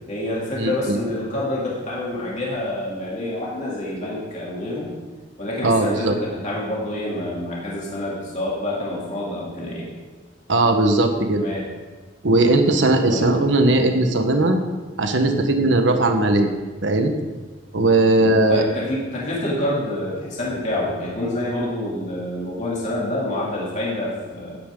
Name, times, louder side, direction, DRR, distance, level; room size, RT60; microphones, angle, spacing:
voice 1, 0.0-4.9 5.4-9.9 11.4-11.7 13.1-13.3 18.2-24.6, left 1 dB, 40° left, -5 dB, 3.1 m, -27 dB
voice 2, 0.6-1.0 5.6-6.1 10.5-11.4 12.2-14.6 15.0-16.5 16.8-17.1 17.7-18.6, right 2 dB, 75° right, 5 dB, 1.4 m, -18 dB
17.0 x 9.5 x 3.9 m, 1.3 s
head